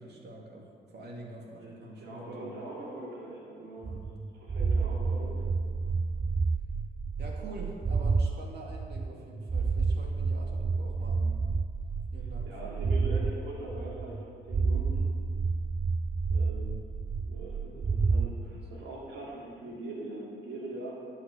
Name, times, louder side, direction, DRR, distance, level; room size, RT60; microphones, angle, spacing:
voice 1, 0.0-2.6 3.7-4.1 5.8-6.1 7.2-11.4 12.1-13.0 17.7-17.8 18.4-18.6, right 2 dB, 55° right, 0 dB, 2.3 m, -46 dB
voice 2, 1.6-3.9 4.3-5.5 7.4-7.5 12.4-15.0 16.3-16.8 17.2-21.1, right 2 dB, 85° right, -4 dB, 3.1 m, -42 dB
sound 1, 3.8-8.3 8.7-13.3 13.7-14.2 14.5-18.3, right 4 dB, 20° right, 0.4 m, -30 dB
9.8 x 6.2 x 8.4 m, 2.2 s
cardioid pair, 90°, 20 cm